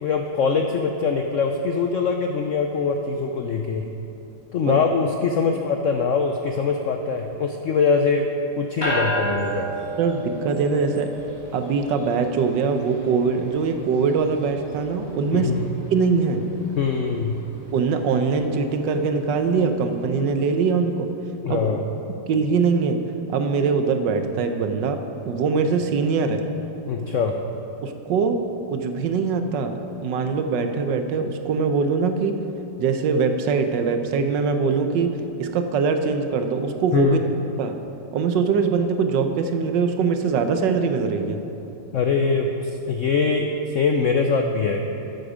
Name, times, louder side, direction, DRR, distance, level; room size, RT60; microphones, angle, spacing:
voice 1, 0.0-3.9 4.5-8.3 8.6-9.7 15.3-15.7 16.8-17.4 21.4-21.9 26.9-27.4 36.9-37.3 41.9-44.8, left 5 dB, 80° left, 4 dB, 0.6 m, -23 dB
sound 1, 8.8-20.4, right 1 dB, 15° left, 2.6 m, -34 dB
voice 2, 10.0-11.1 11.5-15.5 15.9-16.4 17.7-21.1 21.5-21.7 22.3-23.0 23.3-26.4 27.8-28.4 28.7-32.3 32.8-35.1 35.4-37.2 37.6-37.7 38.1-41.4, right 5 dB, 75° right, 7 dB, 1.4 m, -22 dB
12.5 x 7.9 x 5.0 m, 2.9 s
omnidirectional pair, 2.0 m